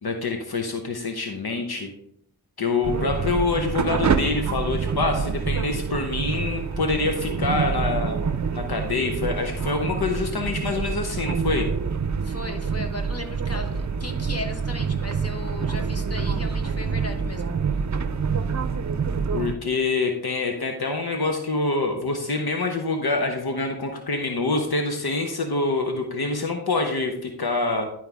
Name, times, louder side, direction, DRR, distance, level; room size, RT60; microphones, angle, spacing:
voice 1, 0.0-1.9 2.6-8.2 8.5-11.7 19.3-27.9, left 3 dB, 70° left, 4 dB, 0.9 m, -26 dB
sound 1, 2.8-19.5, right 5 dB, 45° right, 0.6 m, -27 dB
voice 2, 12.2-17.5, left 2 dB, 40° left, 4 dB, 1.3 m, -36 dB
11.0 x 4.6 x 3.5 m, 0.72 s
wide cardioid pair, 45°, 39 cm